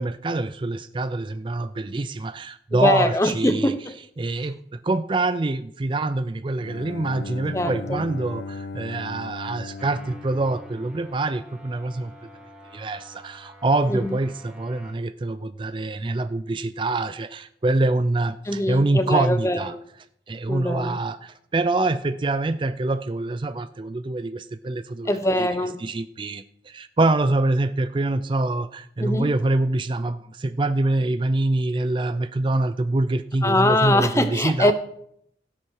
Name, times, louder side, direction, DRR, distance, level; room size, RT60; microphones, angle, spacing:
voice 1, 0.0-3.7 4.2-12.1 12.7-19.7 20.3-25.5 25.8-34.7, right 2 dB, 30° right, 13 dB, 0.4 m, -25 dB
voice 2, 2.7-3.8 7.5-8.0 13.9-14.2 18.5-19.8 20.5-21.0 25.1-25.8 29.0-29.3 33.4-34.7, left 1 dB, 15° left, 11 dB, 0.7 m, -22 dB
Bowed string instrument, 6.5-11.4, left 3 dB, 70° left, 0.4 m, -37 dB
sound 1, 9.8-14.9, equal, 5° right, 1.8 m, -47 dB
16.5 x 7.4 x 4.8 m, 0.73 s
head